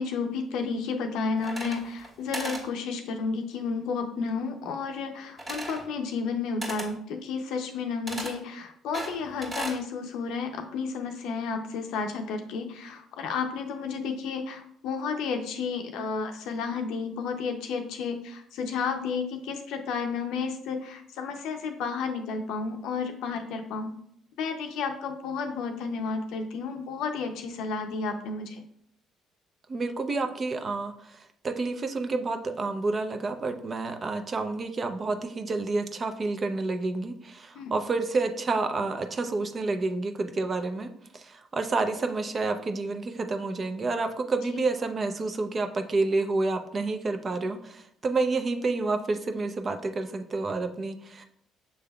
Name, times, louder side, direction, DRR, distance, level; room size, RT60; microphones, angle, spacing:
voice 1, 0.0-24.0 24.4-28.6 37.5-37.7, left 5 dB, 70° left, 5 dB, 0.6 m, -32 dB
sound 1, 1.4-2.1 2.3-2.7 5.4-5.9 6.6-6.9 8.1-8.4 8.9-9.8, right 1 dB, 25° right, 1.6 m, -36 dB
voice 2, 29.7-40.9 41.1-51.2, right 3 dB, 40° right, 7 dB, 0.6 m, -29 dB
6.4 x 3.4 x 2.3 m, 0.67 s
hypercardioid pair, 60°, 0 cm